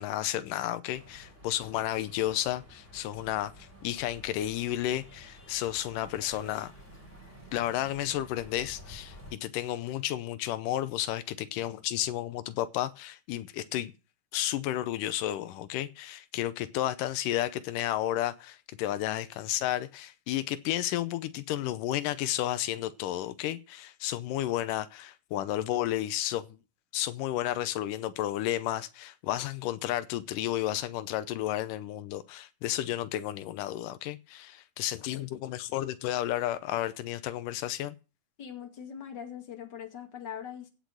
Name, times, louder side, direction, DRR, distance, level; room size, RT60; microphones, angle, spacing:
voice 1, 0.0-6.7 7.5-13.9 14.3-26.4 26.9-38.0, left 13 dB, 85° left, 2.4 m, -32 dB
sound 1, 0.9-9.3, equal, 15° left, 3.5 m, -51 dB
voice 2, 38.4-40.7, left 8 dB, 35° left, 2.4 m, -41 dB
16.5 x 6.3 x 6.3 m
omnidirectional pair, 3.7 m